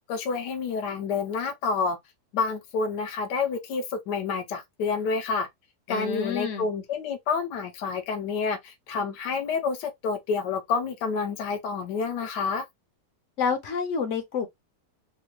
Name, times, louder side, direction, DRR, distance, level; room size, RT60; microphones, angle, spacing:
voice 1, 0.1-2.0 2.3-5.5 5.9-12.6, left 5 dB, 80° left, 1.3 m, -28 dB
voice 2, 5.9-6.7 13.4-14.5, left 6 dB, 60° left, 0.9 m, -28 dB
3.4 x 2.2 x 3.1 m
omnidirectional pair, 1.8 m